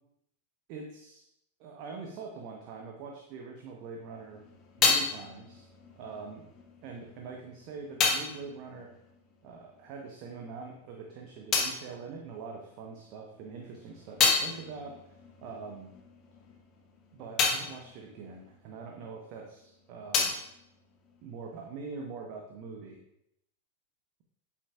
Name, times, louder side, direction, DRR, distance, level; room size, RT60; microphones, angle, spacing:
voice 1, 0.7-1.3 1.6-4.5 4.8-5.7 6.0-6.4 6.8-8.9 9.4-15.0 15.4-15.9 17.1-20.3 21.2-23.0, right 4 dB, 45° right, 2 dB, 1.0 m, -43 dB
sound 1, 4.0-10.0 10.2-12.9 13.4-19.4 19.6-21.7, left 5 dB, 35° left, 1.3 m, -32 dB
8.9 x 7.3 x 2.4 m, 0.79 s
figure-of-eight pair, 90°, 0 cm